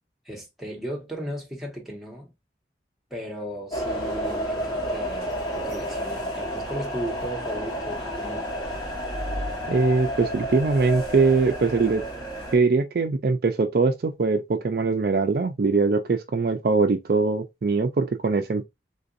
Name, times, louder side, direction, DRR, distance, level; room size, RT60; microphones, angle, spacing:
voice 1, 0.2-2.3 3.1-5.4 5.6-8.5, equal, ahead, 1.1 m, -36 dB
sound 1, 3.7-12.5, equal, 25° left, 1.2 m, -30 dB
voice 2, 9.7-12.0 12.5-18.7, right 4 dB, 55° right, 0.4 m, -22 dB
3.8 x 2.5 x 2.5 m
head